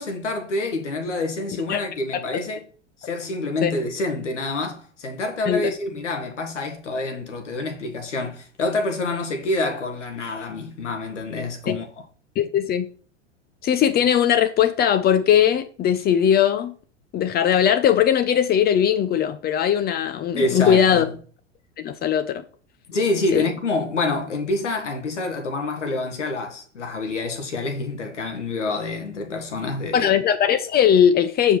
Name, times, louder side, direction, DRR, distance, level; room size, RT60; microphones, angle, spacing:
voice 1, 0.0-2.7 3.0-11.9 20.4-21.0 22.9-30.1, left 2 dB, 90° left, 1.3 m, -27 dB
voice 2, 12.4-12.9 13.6-16.7 17.1-21.1 21.8-22.4 23.3-23.5 29.9-31.6, left 9 dB, 30° left, 0.5 m, -19 dB
6.9 x 5.1 x 3.1 m
hypercardioid pair, 95°, 35 cm